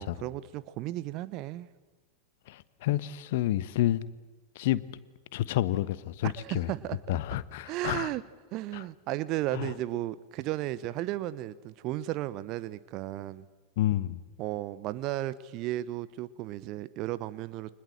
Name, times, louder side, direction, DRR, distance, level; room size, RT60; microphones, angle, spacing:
voice 1, 0.0-1.7 6.2-7.0 7.7-8.2 8.5-13.4 14.4-17.7, right 15 dB, 40° right, 16 dB, 0.9 m, -34 dB
voice 2, 2.5-4.0 4.5-4.8 5.3-6.7 7.1-8.1 8.7-8.8 9.5-9.7 13.8-14.2, left 14 dB, 50° left, 17 dB, 1.2 m, -29 dB
29.5 x 25.0 x 7.5 m, 1.2 s
figure-of-eight pair, 90°, 0 cm